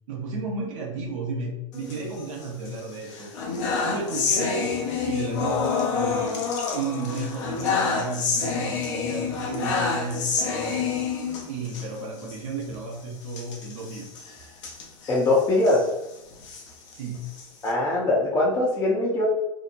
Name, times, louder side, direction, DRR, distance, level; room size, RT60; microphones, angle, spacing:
voice 1, 0.1-3.3 3.8-10.9 11.5-14.2 16.9-17.2, right 3 dB, 70° right, -2 dB, 0.8 m, -33 dB
sound 1, 1.7-2.7 3.1-11.9 12.2-12.4 12.6-12.8 13.3-15.8 16.3-17.7, left 5 dB, 65° left, 0.7 m, -28 dB
voice 2, 15.1-15.9 17.6-19.3, left 2 dB, 20° left, -5 dB, 0.6 m, -22 dB
2.8 x 2.1 x 2.5 m, 0.92 s
hypercardioid pair, 110°, 17 cm